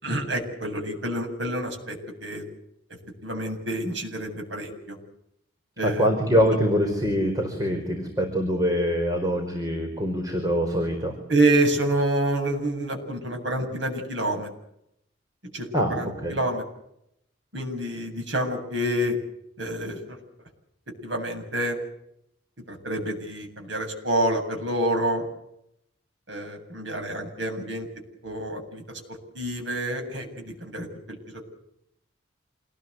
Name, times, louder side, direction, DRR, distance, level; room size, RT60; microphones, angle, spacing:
voice 1, 0.0-2.4 3.2-5.0 5.8-6.1 11.3-14.5 15.5-16.6 17.5-19.1 19.6-20.0 21.0-21.8 22.7-25.2 26.3-27.9 28.2-28.8 29.3-31.4, right 1 dB, 75° right, 3 dB, 7.9 m, -27 dB
voice 2, 5.8-11.2 15.7-15.9 16.2-16.4, equal, 20° right, 3 dB, 4.8 m, -24 dB
28.0 x 20.5 x 8.2 m, 0.79 s
head